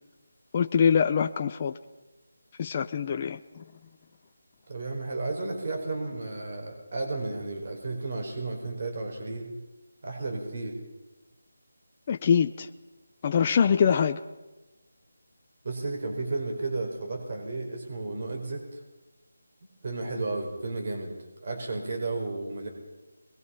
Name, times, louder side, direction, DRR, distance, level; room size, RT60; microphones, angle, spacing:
voice 1, 0.5-1.7 2.6-3.6 12.1-12.7 13.2-14.2, left 7 dB, 25° left, 6 dB, 0.6 m, -24 dB
voice 2, 4.7-9.5 10.0-10.8 15.6-18.8 19.8-21.1 21.4-22.7, right 3 dB, 45° right, 2 dB, 4.8 m, -33 dB
23.0 x 21.5 x 5.8 m, 1.1 s
figure-of-eight pair, 170°, 0 cm